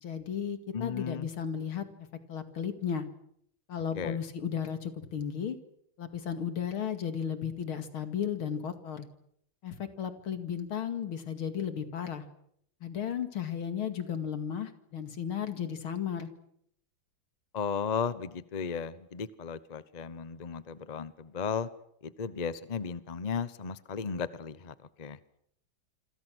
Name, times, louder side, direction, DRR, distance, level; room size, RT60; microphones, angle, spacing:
voice 1, 0.0-3.1 3.7-5.6 6.0-9.1 9.6-12.2 12.8-16.3, left 8 dB, 90° left, 8 dB, 3.0 m, -34 dB
voice 2, 0.7-1.3 3.9-4.2 17.5-21.7 22.0-25.2, left 6 dB, 35° left, 15 dB, 0.7 m, -35 dB
28.0 x 25.5 x 6.3 m, 0.71 s
omnidirectional pair, 2.2 m